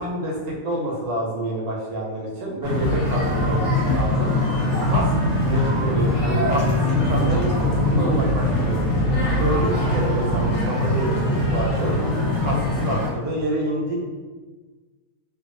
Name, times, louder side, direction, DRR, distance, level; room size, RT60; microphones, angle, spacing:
voice 1, 0.0-4.3 4.8-9.1 9.4-11.9 12.4-14.0, right 1 dB, 85° right, -2 dB, 1.2 m, -28 dB
sound 1, 2.6-13.1, left 1 dB, 60° left, 0.9 m, -22 dB
Bass guitar, 5.1-11.3, right 6 dB, 65° right, 0.8 m, -37 dB
2.7 x 2.3 x 2.5 m, 1.3 s
omnidirectional pair, 1.5 m